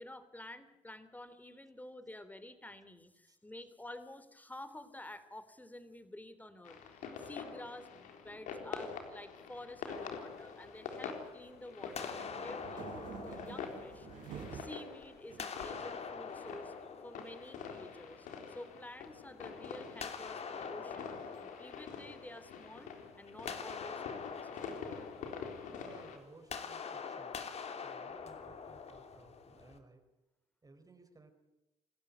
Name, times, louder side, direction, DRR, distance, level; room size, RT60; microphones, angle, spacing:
voice 1, 0.0-14.1 14.3-16.7 17.0-21.1 21.4-22.9 23.2-24.5, left 1 dB, 10° left, 12 dB, 3.2 m, -50 dB
sound 1, 6.7-26.2, left 6 dB, 75° left, 3.8 m, -46 dB
sound 2, 9.9-11.5 12.0-14.7 15.3-18.2 20.0-22.8 23.1-29.8, left 6 dB, 55° left, 3.1 m, -45 dB
sound 3, 11.8-14.8 15.3-16.2, right 6 dB, 80° right, 6.1 m, -48 dB
voice 2, 25.8-27.4 27.8-30.0 30.6-31.3, right 3 dB, 30° right, 7 dB, 4.5 m, -59 dB
28.0 x 13.5 x 9.7 m, 0.96 s
supercardioid pair, 60°, 13 cm